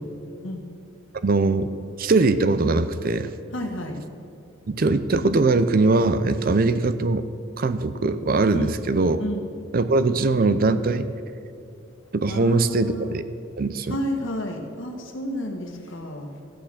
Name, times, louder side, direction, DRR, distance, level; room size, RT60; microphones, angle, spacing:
voice 1, 1.2-1.7 2.0-3.3 4.7-7.3 7.6-9.2 9.7-11.1 12.1-13.3 13.6-14.0, right 3 dB, 45° right, 12 dB, 0.5 m, -21 dB
voice 2, 3.5-4.0 8.5-8.7 9.2-9.4 12.3-13.2 13.9-16.3, left 1 dB, 65° left, 3 dB, 1.6 m, -31 dB
14.0 x 6.5 x 7.3 m, 2.5 s
head